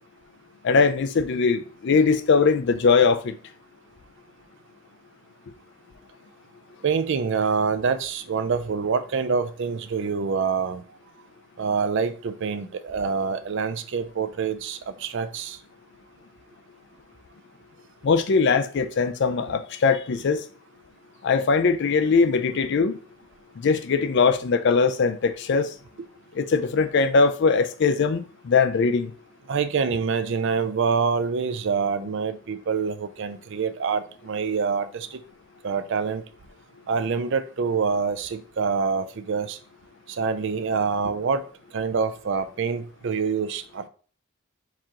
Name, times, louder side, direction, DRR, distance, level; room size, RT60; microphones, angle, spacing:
voice 1, 0.6-3.4 18.0-20.4 21.2-23.0 23.6-25.7 26.4-29.1, left 4 dB, 55° left, 0.4 m, -21 dB
voice 2, 6.8-10.8 11.6-15.6 29.5-35.2 35.6-36.2 36.9-39.6 40.2-41.4 41.7-43.8, right 5 dB, 55° right, 0.4 m, -26 dB
4.7 x 2.9 x 3.6 m
head